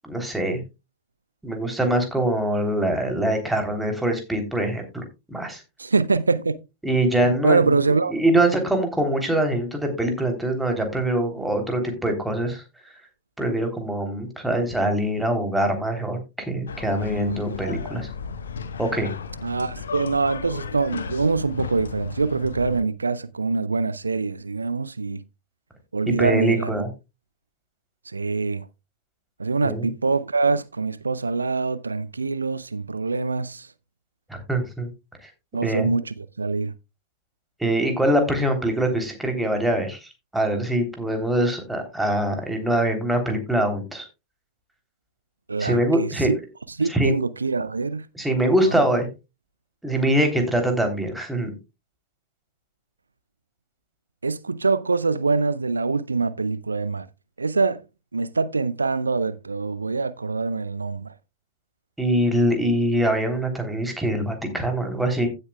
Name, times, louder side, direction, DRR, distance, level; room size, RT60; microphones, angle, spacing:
voice 1, 0.0-0.6 1.4-5.6 6.8-7.8 8.1-12.6 13.4-18.1 18.8-19.1 26.1-26.9 29.6-29.9 34.3-34.9 35.2-35.3 35.6-35.9 37.6-40.0 40.3-44.1 45.6-46.3 46.9-47.1 48.1-49.1 49.8-51.5 62.0-65.3, right 1 dB, 5° right, 3.2 m, -23 dB
voice 2, 5.8-6.6 7.2-8.1 19.4-25.2 25.9-26.7 28.1-28.7 29.4-33.7 35.5-36.7 45.5-46.4 46.8-48.1 48.7-48.8 54.2-57.1 57.4-57.8 58.1-61.1, right 4 dB, 80° right, 0.4 m, -24 dB
sound 1, 16.7-22.8, left 6 dB, 70° left, 1.1 m, -34 dB
15.5 x 7.9 x 2.3 m
figure-of-eight pair, 90°, 0 cm